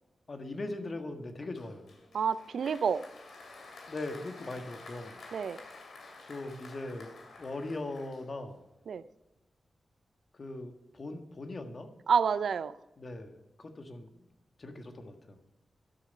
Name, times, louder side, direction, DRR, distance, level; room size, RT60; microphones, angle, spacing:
voice 1, 0.3-1.9 3.9-5.2 6.3-8.7 10.3-11.9 13.0-14.3 14.6-15.4, left 2 dB, 55° left, 6 dB, 1.5 m, -40 dB
Applause, 1.6-8.7, left 3 dB, 75° left, 2.4 m, -51 dB
voice 2, 2.1-3.0 5.3-5.6 8.9-9.0 12.1-12.7, right 6 dB, 80° right, 16 dB, 0.4 m, -28 dB
12.5 x 6.6 x 5.4 m, 1.0 s
supercardioid pair, 40°, 0 cm